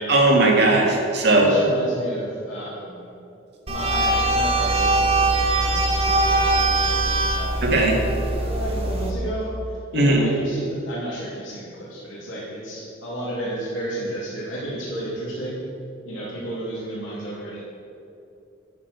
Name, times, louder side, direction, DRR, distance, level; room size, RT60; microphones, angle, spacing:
voice 1, 0.1-1.5 7.6-8.0 9.9-10.2, right 2 dB, 60° right, 0 dB, 1.8 m, -18 dB
voice 2, 1.3-3.1 3.7-9.5 9.9-15.6 16.0-17.6, right 1 dB, 90° left, -7 dB, 2.8 m, -32 dB
sound 1, 3.7-9.1, right 2 dB, 30° right, 1.1 m, -21 dB
9.7 x 7.3 x 6.7 m, 2.7 s
head